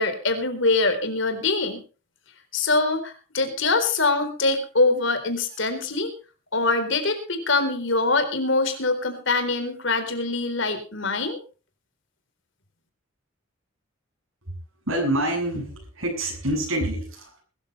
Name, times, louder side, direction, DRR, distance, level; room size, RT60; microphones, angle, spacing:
voice 1, 0.0-1.8 2.5-6.1 6.5-11.4, left 3 dB, 60° left, 7 dB, 4.0 m, -24 dB
voice 2, 14.9-17.4, right 1 dB, 80° right, 0 dB, 7.9 m, -26 dB
22.0 x 13.5 x 3.3 m, 0.35 s
head